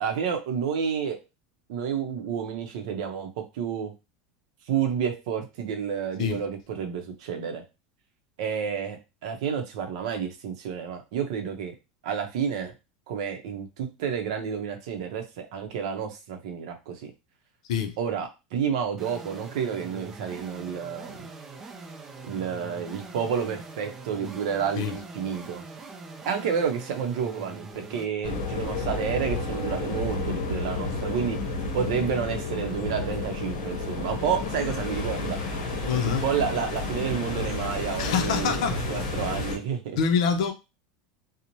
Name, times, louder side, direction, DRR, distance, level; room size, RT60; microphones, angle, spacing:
voice 1, 0.0-1.2 1.7-3.3 3.5-3.9 4.7-7.6 8.4-11.7 12.0-12.7 13.1-17.1 18.0-21.3 22.2-25.6 26.2-31.4 31.7-35.4 36.0-38.6 38.9-40.0, right 7 dB, 60° right, 0.6 m, -30 dB
sound 1, 19.0-28.1, right 3 dB, 15° right, 0.3 m, -43 dB
sound 2, 28.2-39.6, left 3 dB, 50° left, 0.9 m, -31 dB
voice 2, 35.9-36.2 38.0-38.8 40.0-40.5, left 6 dB, 70° left, 0.5 m, -25 dB
2.6 x 2.0 x 2.9 m
supercardioid pair, 180°, 4 cm